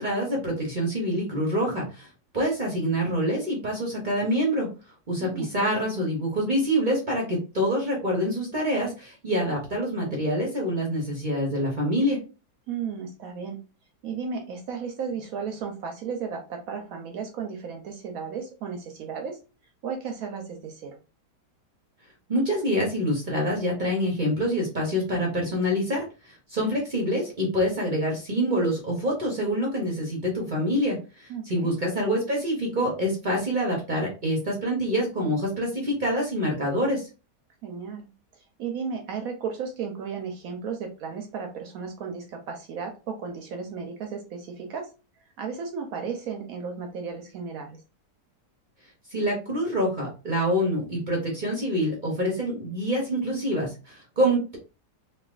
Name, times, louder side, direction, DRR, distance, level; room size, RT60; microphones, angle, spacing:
voice 1, 0.0-2.1 2.3-4.7 5.1-12.2 22.3-37.1 49.1-54.6, equal, 45° right, -1 dB, 0.7 m, -26 dB
voice 2, 5.2-5.7 12.7-13.6 14.0-19.4 19.8-21.0 31.3-31.7 37.6-38.1 38.3-44.9 45.4-47.8, right 6 dB, 70° right, 4 dB, 0.9 m, -34 dB
3.2 x 2.6 x 2.3 m, 0.32 s
omnidirectional pair, 1.8 m